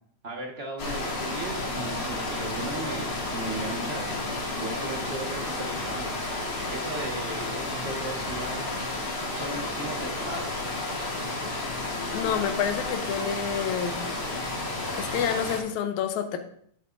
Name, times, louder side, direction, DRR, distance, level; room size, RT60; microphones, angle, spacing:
voice 1, 0.2-6.2 6.7-9.0 9.3-10.5, right 2 dB, 30° right, 0 dB, 1.2 m, -37 dB
sound 1, 0.8-15.6, left 2 dB, 45° left, 2.5 m, -32 dB
voice 2, 12.1-14.0 15.0-16.4, left 8 dB, 75° left, 6 dB, 2.2 m, -28 dB
12.5 x 8.4 x 2.7 m, 0.64 s
omnidirectional pair, 3.5 m